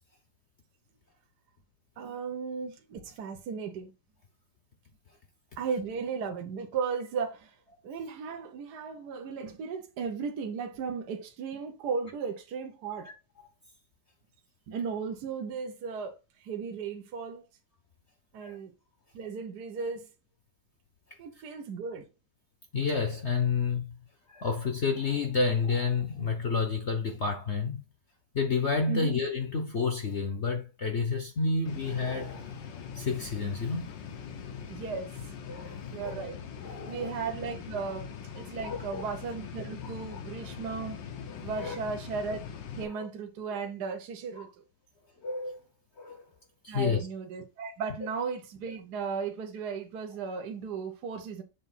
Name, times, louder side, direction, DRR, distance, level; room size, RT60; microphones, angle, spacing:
voice 1, 2.0-3.9 5.6-7.5 7.8-13.1 14.7-16.1 16.4-17.4 18.3-18.7 19.1-20.1 21.2-22.1 28.9-29.1 34.7-35.1 35.9-36.4 36.9-41.0 41.4-42.4 42.8-44.5 46.7-51.4, right 5 dB, 65° right, 1.4 m, -35 dB
voice 2, 13.0-13.5 18.4-18.6 22.7-23.8 24.3-27.8 28.3-33.9 35.5-36.2 36.6-37.1 38.6-39.0 39.8-39.9 41.3-41.8 42.8-43.0 44.3-44.4 45.2-45.6 46.0-46.2 46.6-47.1 48.0-48.1, left 4 dB, 50° left, 0.9 m, -30 dB
sound 1, 31.7-42.8, left 7 dB, 90° left, 1.6 m, -42 dB
7.1 x 2.7 x 5.4 m
omnidirectional pair, 1.9 m